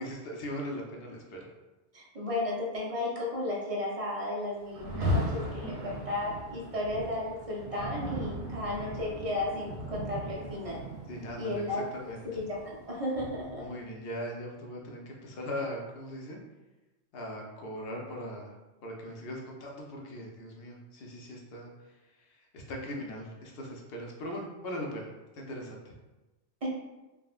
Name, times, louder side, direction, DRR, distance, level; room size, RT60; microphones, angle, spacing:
voice 1, 0.0-1.5 11.1-12.2 13.6-16.4 17.1-18.5 18.8-25.9, equal, 65° left, 0 dB, 0.8 m, -40 dB
voice 2, 1.9-10.8 11.4-11.8 12.4-13.7 26.6-26.7, left 1 dB, 45° right, -5 dB, 0.5 m, -34 dB
Rain, 4.7-13.8, equal, 85° right, 1.0 m, -37 dB
3.5 x 2.0 x 2.4 m, 1.1 s
omnidirectional pair, 1.1 m